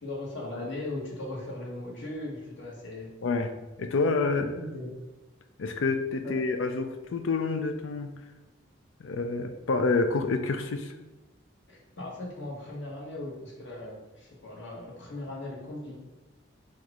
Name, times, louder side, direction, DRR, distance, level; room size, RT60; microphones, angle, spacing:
voice 1, 0.0-3.2 4.4-4.9 6.2-6.4 11.7-16.0, left 2 dB, 65° left, -3 dB, 1.4 m, -38 dB
voice 2, 3.2-4.5 5.6-8.1 9.0-10.9, left 3 dB, 85° left, 7 dB, 0.5 m, -28 dB
4.4 x 2.4 x 4.8 m, 1.1 s
head